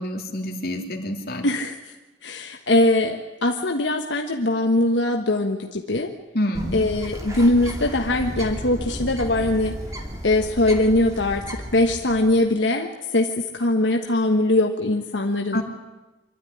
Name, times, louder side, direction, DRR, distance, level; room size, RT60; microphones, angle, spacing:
voice 1, 0.0-1.4 6.3-6.8 15.5-15.6, left 1 dB, 55° left, 1 dB, 2.9 m, -27 dB
voice 2, 1.4-1.8 2.2-6.1 6.7-9.7 10.2-15.6, left 2 dB, 85° left, 3 dB, 1.3 m, -21 dB
Bird, 6.5-12.5, equal, 20° right, 2.3 m, -34 dB
25.0 x 12.5 x 9.9 m, 1.1 s
head